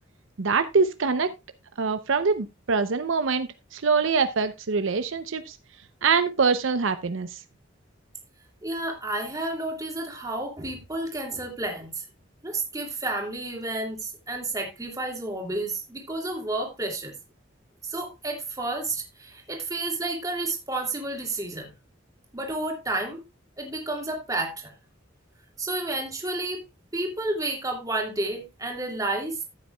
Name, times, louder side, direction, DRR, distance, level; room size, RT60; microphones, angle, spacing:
voice 1, 0.4-1.3 1.8-5.6 6.0-7.4, right 5 dB, 75° right, 0.6 m, -24 dB
voice 2, 8.6-12.0 12.4-17.1 17.8-21.7 22.3-23.2 23.6-24.7 25.6-26.6 26.9-29.4, right 2 dB, 15° right, 2.5 m, -31 dB
14.0 x 8.3 x 2.3 m
head